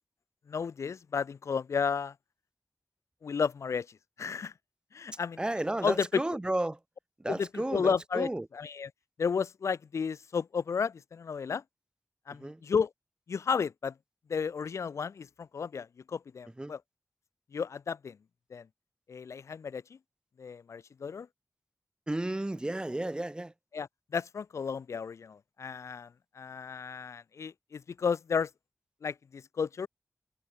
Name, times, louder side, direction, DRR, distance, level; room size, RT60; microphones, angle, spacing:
voice 1, 0.5-2.1 3.2-4.5 4.9-5.4 5.8-6.2 7.3-8.9 9.2-11.6 12.3-12.9 13.3-13.9 14.3-16.8 17.5-18.2 18.5-18.7 19.1-20.0 20.4-21.3 23.7-28.5 29.0-29.9, left 6 dB, 90° left, 0.4 m, -33 dB
voice 2, 5.4-6.8 7.2-8.5 12.4-12.6 16.6-16.7 22.1-23.5, right 1 dB, 20° right, 0.3 m, -33 dB
wide cardioid pair, 75°, 5 cm